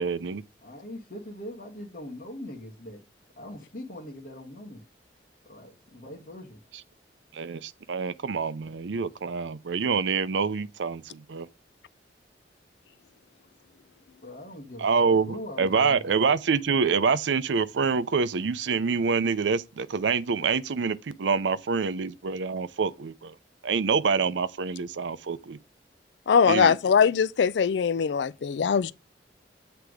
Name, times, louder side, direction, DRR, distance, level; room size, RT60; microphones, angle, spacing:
voice 1, 0.0-0.4 7.3-11.5 14.8-23.3 23.6-25.6 26.5-26.7, right 5 dB, 90° right, 0.5 m, -26 dB
voice 2, 0.6-3.0 3.4-4.8 5.4-6.6 14.2-16.2, left 1 dB, 50° left, 1.4 m, -41 dB
voice 3, 26.3-28.9, left 6 dB, 75° left, 0.4 m, -21 dB
8.0 x 3.4 x 4.8 m
head